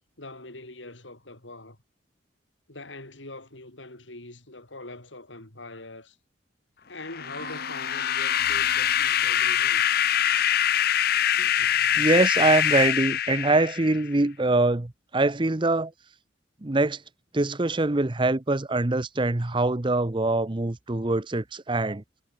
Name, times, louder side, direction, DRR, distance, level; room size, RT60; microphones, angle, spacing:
voice 1, 0.2-1.8 2.7-6.2 6.9-10.1, left 2 dB, 85° left, 5.8 m, -43 dB
sound 1, 7.1-14.1, left 10 dB, 55° left, 0.7 m, -24 dB
sound 2, 7.2-12.2, right 2 dB, 80° right, 2.6 m, -49 dB
voice 2, 11.9-15.9 16.6-17.0 17.3-22.0, right 2 dB, 25° right, 0.8 m, -24 dB
head